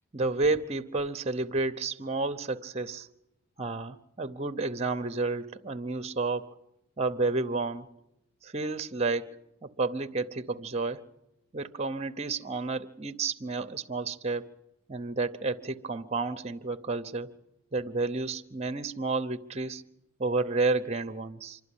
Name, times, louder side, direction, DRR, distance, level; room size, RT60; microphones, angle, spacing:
voice 1, 0.1-3.1 3.6-6.6 7.0-7.9 8.4-11.0 11.5-14.5 14.9-17.3 17.7-19.8 20.2-21.6, right 3 dB, 30° right, 0.8 m, -31 dB
26.5 x 12.0 x 9.9 m
head